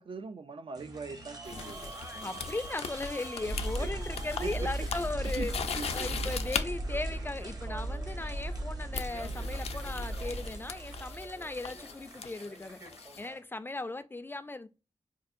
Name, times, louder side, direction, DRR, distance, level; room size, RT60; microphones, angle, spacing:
voice 1, 0.0-1.9 3.8-4.0 4.4-4.9 5.2-6.2, right 4 dB, 55° right, 0.4 m, -41 dB
sound 1, 0.7-13.4, right 2 dB, 40° right, 0.8 m, -47 dB
sound 2, 1.4-6.7 7.9-8.2 8.9-13.2, left 6 dB, 80° left, 0.4 m, -39 dB
voice 2, 2.2-5.5 5.9-12.8 13.2-14.7, left 2 dB, 20° left, 0.4 m, -37 dB
sound 3, 3.4-11.8, right 1 dB, 75° right, 0.8 m, -37 dB
4.4 x 2.4 x 2.5 m
wide cardioid pair, 85°, 10 cm